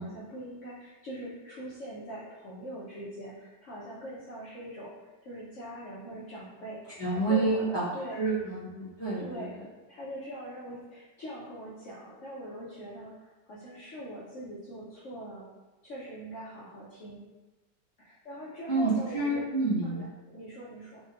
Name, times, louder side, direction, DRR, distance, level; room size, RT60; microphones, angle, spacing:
voice 1, 0.0-4.9 5.2-8.2 9.2-9.5 9.9-15.5 15.8-17.2 18.0-19.4 19.8-21.0, equal, 60° left, -8 dB, 0.8 m, -42 dB
voice 2, 7.0-7.8 8.1-9.5 18.7-20.1, right 3 dB, 35° left, -13 dB, 0.4 m, -28 dB
4.3 x 2.3 x 2.8 m, 1.2 s
omnidirectional pair, 2.0 m